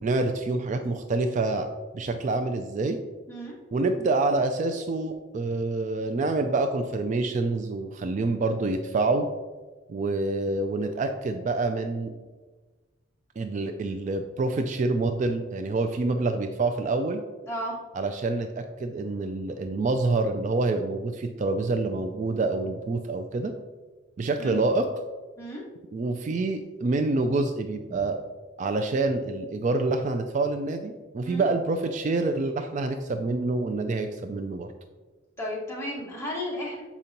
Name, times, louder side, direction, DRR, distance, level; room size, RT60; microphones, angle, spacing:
voice 1, 0.0-1.7 1.9-3.0 3.7-9.3 9.9-12.1 13.4-17.2 17.9-23.5 24.2-24.8 25.9-28.2 28.6-34.7, right 3 dB, 40° right, 6 dB, 0.3 m, -27 dB
voice 2, 17.4-17.7 24.4-24.6 25.4-25.6 31.2-31.4 35.4-36.8, equal, 15° left, -5 dB, 1.5 m, -33 dB
7.1 x 5.1 x 2.9 m, 1.3 s
head